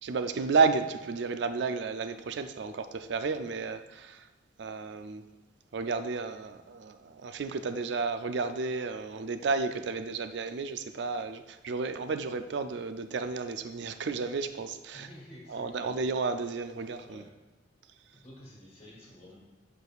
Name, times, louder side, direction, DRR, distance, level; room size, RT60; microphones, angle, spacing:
voice 1, 0.0-4.3 4.6-5.3 5.7-15.1 15.5-17.2, right 4 dB, 65° right, 10 dB, 0.4 m, -32 dB
voice 2, 14.9-16.1 16.9-17.3 18.1-19.4, left 1 dB, 30° left, -3 dB, 1.6 m, -50 dB
7.9 x 6.1 x 2.4 m, 1.1 s
head